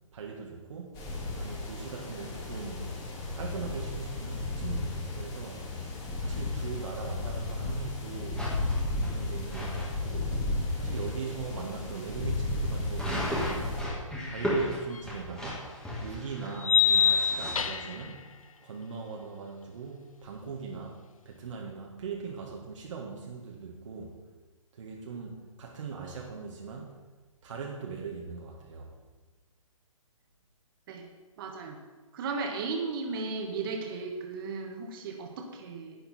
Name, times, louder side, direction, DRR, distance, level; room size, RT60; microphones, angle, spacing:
voice 1, 0.1-1.0 1.4-2.9 3.3-5.7 6.2-8.5 9.0-10.4 10.8-13.8 14.3-15.7 16.0-18.3 18.6-24.2 24.7-27.0 27.4-28.9, right 5 dB, 60° right, -1 dB, 1.7 m, -40 dB
sound 1, 0.9-13.8, left 2 dB, 20° left, 2.2 m, -34 dB
sound 2, 8.4-9.9 10.4-10.5 10.9-11.1 11.5-11.6 12.9-17.6, left 1 dB, 5° left, 1.8 m, -35 dB
sound 3, 15.0-15.1 16.6-18.1, left 8 dB, 80° left, 0.8 m, -24 dB
voice 2, 31.4-31.8 32.1-36.0, right 4 dB, 40° right, 3 dB, 1.7 m, -35 dB
11.0 x 9.0 x 4.3 m, 1.2 s
hypercardioid pair, 145°, 18 cm